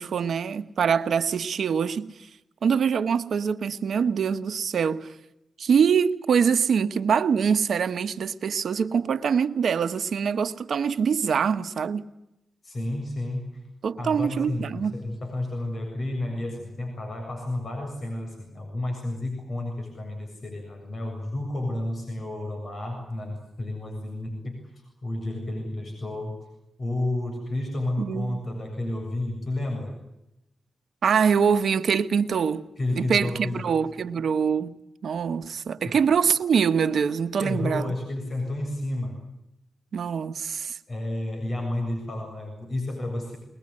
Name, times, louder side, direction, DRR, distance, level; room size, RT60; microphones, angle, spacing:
voice 1, 0.0-2.1 2.6-5.1 5.6-12.1 13.8-14.9 28.0-28.4 31.0-32.7 33.0-37.9 39.9-40.8, right 6 dB, 75° right, 1.2 m, -24 dB
voice 2, 12.6-13.6 14.0-26.5 26.8-30.0 32.8-33.8 35.2-35.4 35.8-36.0 37.4-39.2 40.9-43.4, left 1 dB, 55° left, 7.4 m, -31 dB
22.5 x 21.0 x 9.8 m
supercardioid pair, 45°, 0 cm